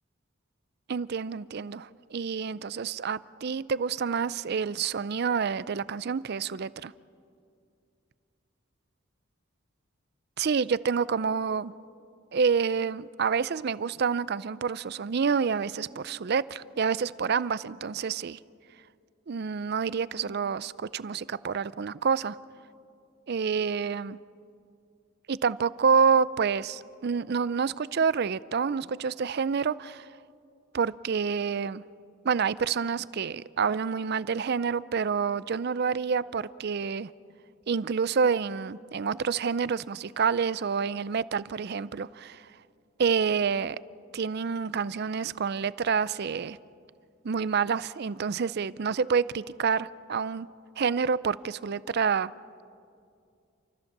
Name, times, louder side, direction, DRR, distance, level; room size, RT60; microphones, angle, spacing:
voice 1, 0.9-6.9 10.4-11.7 12.3-18.4 19.3-22.4 23.3-24.2 25.3-30.1 30.7-31.8 32.2-37.1 37.7-42.4 43.0-43.8 44.1-46.6 47.2-50.5 50.8-52.3, right 6 dB, 50° right, 0.4 m, -28 dB
29.0 x 14.0 x 7.3 m
head